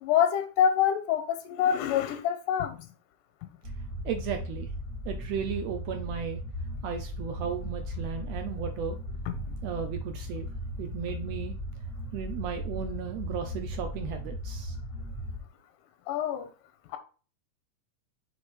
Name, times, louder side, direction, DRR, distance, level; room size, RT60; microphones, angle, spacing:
voice 1, 0.0-2.9 9.3-9.5 16.1-16.5 16.9-17.0, left 9 dB, 90° left, 2.3 m, -26 dB
sound 1, 3.6-15.4, equal, 40° right, 1.6 m, -37 dB
voice 2, 4.0-4.7 5.0-6.4 6.8-9.0 9.6-10.5 10.8-11.5 12.1-14.7, right 7 dB, 80° right, 1.5 m, -35 dB
6.1 x 3.6 x 4.8 m
omnidirectional pair, 3.7 m